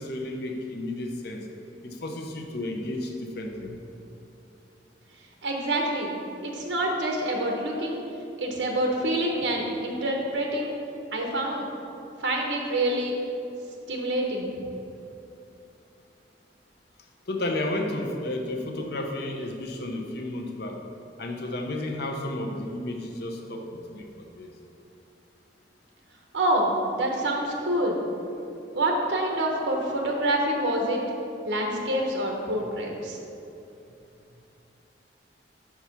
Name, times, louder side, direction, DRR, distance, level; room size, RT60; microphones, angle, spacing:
voice 1, 0.0-1.5 1.8-3.8 17.3-20.8 21.2-24.5, left 1 dB, 60° left, 3 dB, 0.7 m, -32 dB
voice 2, 5.4-6.1 6.4-8.0 8.4-10.7 11.1-11.7 12.2-13.2 13.9-14.5 26.3-28.0 28.7-31.0 31.5-33.2, right 1 dB, 90° right, 1 dB, 0.9 m, -26 dB
5.9 x 4.8 x 5.7 m, 2.8 s
head